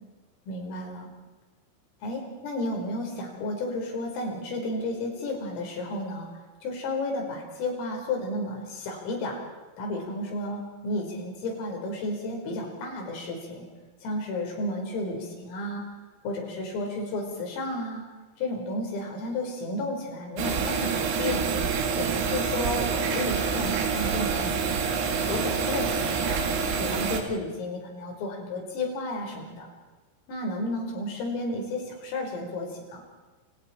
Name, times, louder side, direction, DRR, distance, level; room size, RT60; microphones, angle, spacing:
voice 1, 0.5-1.1 2.0-6.3 6.6-9.4 9.8-13.7 14.0-15.8 16.2-18.0 18.4-21.7 22.0-24.6 25.3-26.4 26.8-29.7 30.3-33.0, left 2 dB, 85° left, 1 dB, 7.5 m, -32 dB
sound 1, 20.4-27.2, right 6 dB, 80° right, 4.9 m, -27 dB
29.0 x 28.0 x 4.5 m, 1.2 s
omnidirectional pair, 5.8 m